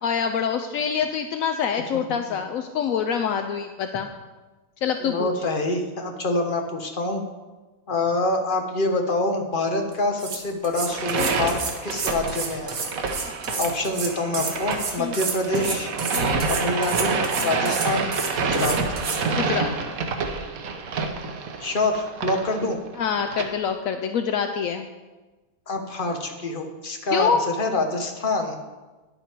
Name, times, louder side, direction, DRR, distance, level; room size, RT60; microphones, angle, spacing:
voice 1, 0.0-4.1 4.8-5.3 13.5-13.6 15.0-15.2 16.1-16.5 17.4-17.7 19.3-19.7 23.0-24.9 27.1-27.4, left 7 dB, 75° left, 7 dB, 1.0 m, -26 dB
voice 2, 5.0-7.2 7.9-12.7 13.1-13.3 13.6-15.9 16.5-18.1 18.4-18.8 21.6-22.8 25.7-28.6, left 2 dB, 40° left, 4 dB, 1.2 m, -26 dB
sound 1, 9.9-10.0 10.2-19.2, right 4 dB, 50° right, 1.3 m, -30 dB
sound 2, 10.8-23.5, right 4 dB, 70° right, 1.3 m, -28 dB
10.5 x 8.0 x 4.5 m, 1.2 s
omnidirectional pair, 1.5 m